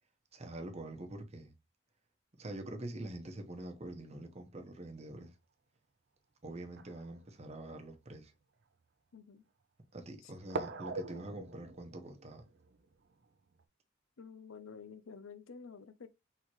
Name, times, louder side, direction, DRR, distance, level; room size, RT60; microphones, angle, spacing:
voice 1, 0.3-1.5 2.4-5.4 6.4-8.3 9.9-12.5, right 1 dB, 30° right, 0.9 m, -45 dB
sound 1, 5.2-5.3 6.6-7.9 8.6-8.7 10.5-13.6, right 3 dB, 55° right, 0.5 m, -44 dB
voice 2, 9.1-9.4 10.2-10.3 14.2-16.1, left 5 dB, 75° left, 0.6 m, -50 dB
4.5 x 3.6 x 3.0 m
head